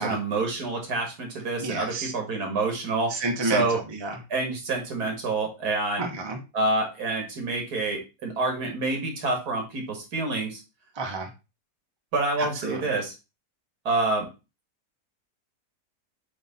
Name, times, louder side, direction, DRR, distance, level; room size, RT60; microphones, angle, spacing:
voice 1, 0.0-3.1 3.4-3.8 4.3-6.0 6.5-10.6 12.1-13.1 13.9-14.3, right 3 dB, 70° right, 3 dB, 2.3 m, -27 dB
voice 2, 1.6-2.1 3.1-3.6 4.0-4.1 6.0-6.4 11.0-11.3 12.6-12.8, right 3 dB, 20° right, 3 dB, 1.0 m, -29 dB
7.7 x 3.3 x 4.2 m, 0.28 s
omnidirectional pair, 1.7 m